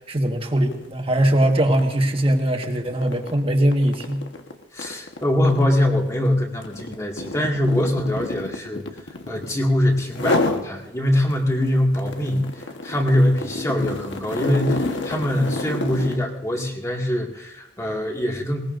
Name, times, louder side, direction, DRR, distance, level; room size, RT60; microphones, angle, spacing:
voice 1, 0.1-4.2, right 1 dB, 30° right, 3 dB, 1.6 m, -21 dB
sound 1, 0.6-0.9 1.2-9.6 10.1-10.7 11.1-16.3, left 2 dB, 90° left, 1.4 m, -29 dB
voice 2, 4.7-8.8 9.3-18.6, left 1 dB, 15° left, 0 dB, 2.1 m, -23 dB
20.5 x 19.5 x 2.6 m, 0.96 s
head